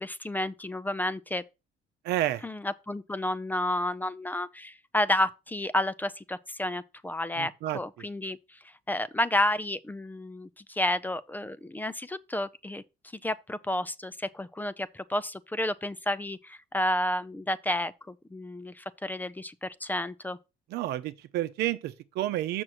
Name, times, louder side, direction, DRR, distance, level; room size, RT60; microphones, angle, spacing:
voice 1, 0.0-1.4 2.4-8.6 8.9-12.8 13.2-20.4, left 1 dB, 10° left, 0.4 m, -31 dB
voice 2, 2.0-2.5 7.4-7.8 20.7-22.6, right 14 dB, 80° right, 0.7 m, -30 dB
6.3 x 6.1 x 4.3 m
cardioid pair, 110°, 17 cm